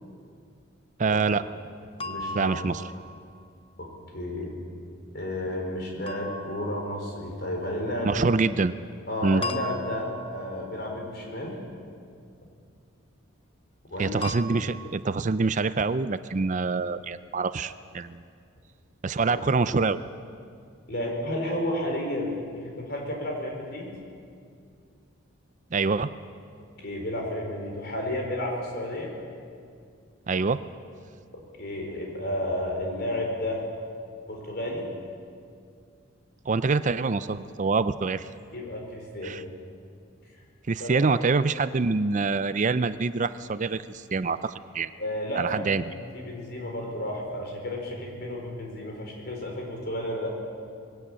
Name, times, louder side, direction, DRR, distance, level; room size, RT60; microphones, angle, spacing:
voice 1, 1.0-1.4 2.3-2.8 8.0-8.7 9.2-9.4 14.0-18.2 19.0-20.0 25.7-26.1 30.3-30.6 36.5-38.3 39.2-39.4 40.7-44.9 45.3-45.9, right 4 dB, 35° right, 13 dB, 0.4 m, -25 dB
voice 2, 2.0-2.5 3.8-3.9 4.1-4.5 5.1-8.2 9.1-11.6 13.9-14.2 19.3-19.5 20.9-23.9 26.8-29.1 31.6-33.6 34.3-34.9 38.5-39.4 40.8-41.0 45.0-45.8 46.1-50.3, left 1 dB, 50° left, 0 dB, 4.7 m, -32 dB
sound 1, 2.0-3.5 6.1-7.2 9.4-10.8 14.2-15.0, left 1 dB, 25° left, 0.9 m, -37 dB
21.0 x 16.0 x 9.0 m, 2.3 s
head